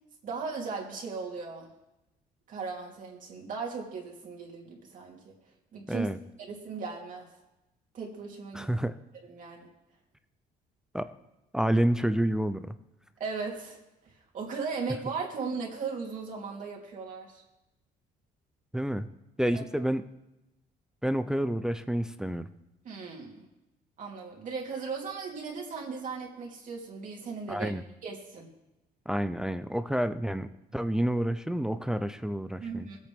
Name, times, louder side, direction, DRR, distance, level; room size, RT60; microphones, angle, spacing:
voice 1, 0.2-1.7 2.5-5.2 5.7-6.1 6.4-7.3 7.9-8.7 9.2-9.7 13.2-13.8 14.3-17.4 19.5-19.6 22.8-23.5 24.0-27.7 28.0-28.5 32.6-33.0, right 5 dB, 50° right, -1 dB, 2.9 m, -37 dB
voice 2, 8.5-8.9 10.9-11.1 11.5-12.8 18.7-19.1 19.4-20.0 21.0-22.5 27.5-27.8 29.1-30.5 30.7-32.9, right 1 dB, 5° right, 11 dB, 0.5 m, -29 dB
20.0 x 8.2 x 3.6 m, 0.95 s
cardioid pair, 110°, 17 cm